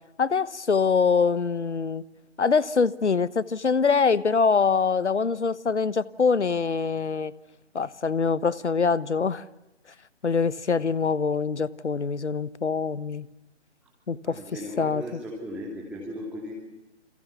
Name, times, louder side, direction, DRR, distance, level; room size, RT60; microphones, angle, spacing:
voice 1, 0.2-2.0 2.4-7.3 7.7-9.4 10.2-13.3 14.1-15.2, left 5 dB, 70° left, 1.2 m, -24 dB
voice 2, 14.2-16.6, equal, 5° right, 2.9 m, -37 dB
29.0 x 27.5 x 7.0 m
figure-of-eight pair, 150°, 36 cm